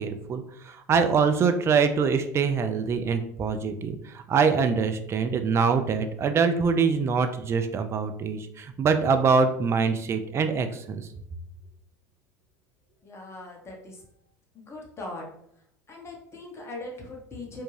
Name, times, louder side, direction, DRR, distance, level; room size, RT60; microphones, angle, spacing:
voice 1, 0.0-11.1, right 5 dB, 30° right, 8 dB, 0.3 m, -24 dB
voice 2, 13.0-14.0 14.5-15.3 15.9-17.6, left 2 dB, 25° left, -1 dB, 0.9 m, -40 dB
2.6 x 2.2 x 3.1 m, 0.73 s
hypercardioid pair, 85°, 10 cm